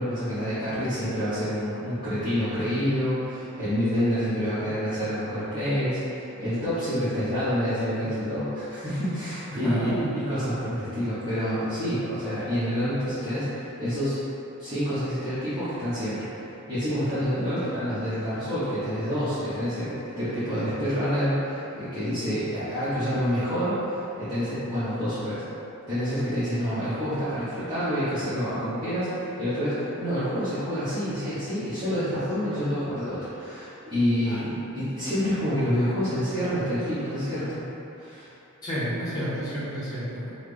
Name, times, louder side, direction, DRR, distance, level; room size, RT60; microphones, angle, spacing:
voice 1, 0.0-14.2 14.6-25.4 25.9-37.6 38.0-38.3, equal, 20° right, -17 dB, 1.2 m, -28 dB
voice 2, 9.6-10.1 34.3-34.4 38.6-40.3, equal, 15° left, -12 dB, 1.2 m, -31 dB
5.8 x 2.3 x 3.3 m, 2.9 s
head